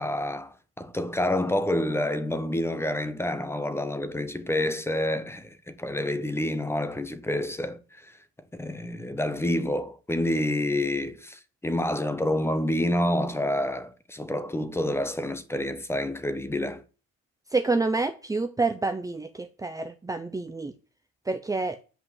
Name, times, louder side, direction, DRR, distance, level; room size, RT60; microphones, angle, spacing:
voice 1, 0.0-8.2 8.6-16.8, left 1 dB, 10° left, 1.2 m, -28 dB
voice 2, 17.5-20.7 21.3-21.8, right 3 dB, 10° right, 0.8 m, -28 dB
11.0 x 5.3 x 8.0 m
cardioid pair, 115°, 30 cm